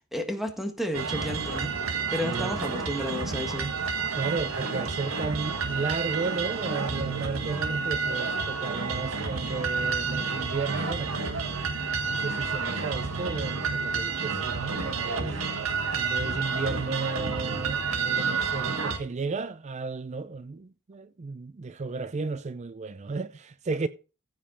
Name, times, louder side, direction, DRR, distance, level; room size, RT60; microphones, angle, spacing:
voice 1, 0.0-1.7 2.1-3.7, equal, ahead, 1.5 m, -32 dB
sound 1, 0.9-19.0, right 4 dB, 85° right, 1.7 m, -30 dB
voice 2, 2.2-2.6 4.1-11.2 12.0-15.4 15.9-23.9, right 4 dB, 35° right, 0.4 m, -34 dB
15.0 x 5.3 x 4.2 m
head